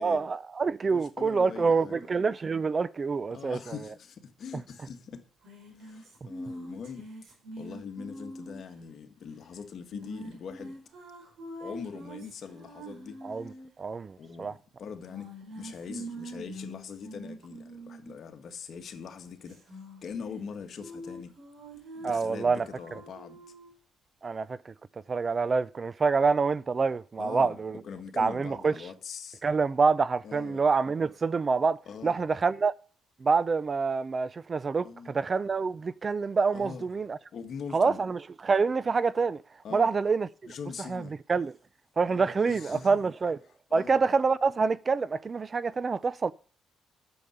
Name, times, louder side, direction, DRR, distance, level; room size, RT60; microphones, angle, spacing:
voice 1, 0.0-3.7 13.2-13.5 13.8-14.5 22.0-22.7 22.9-23.0 24.2-24.7 25.1-27.8 28.2-28.7 29.4-32.7 33.2-37.2 37.7-39.4 39.7-40.3 40.9-41.0 41.3-41.5 42.0-43.4 43.7-46.3, right 4 dB, 35° right, 0.4 m, -26 dB
voice 2, 0.9-2.0 3.3-5.2 5.7-7.1 7.5-10.7 11.6-13.2 14.2-19.6 20.0-21.3 21.9-23.4 27.2-27.6 27.8-29.4 30.2-30.6 31.8-32.2 34.8-35.2 36.5-36.9 37.3-38.0 39.6-39.9 40.5-41.2 42.0-43.0 43.7-44.0, left 6 dB, 55° left, 1.6 m, -42 dB
sound 1, 5.4-8.7 9.9-13.7 15.1-18.2 19.5-20.5 20.8-23.7, equal, 70° right, 4.5 m, -44 dB
8.6 x 7.0 x 7.9 m
cardioid pair, 90°, 0 cm